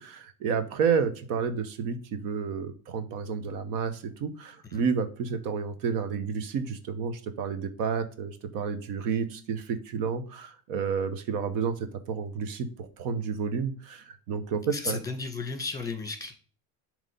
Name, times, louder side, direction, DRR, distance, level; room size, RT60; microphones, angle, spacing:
voice 1, 0.0-15.0, right 6 dB, 75° right, 11 dB, 1.0 m, -30 dB
voice 2, 14.7-16.3, left 4 dB, 10° left, 6 dB, 1.6 m, -34 dB
7.4 x 3.2 x 5.3 m, 0.42 s
cardioid pair, 125°, 34 cm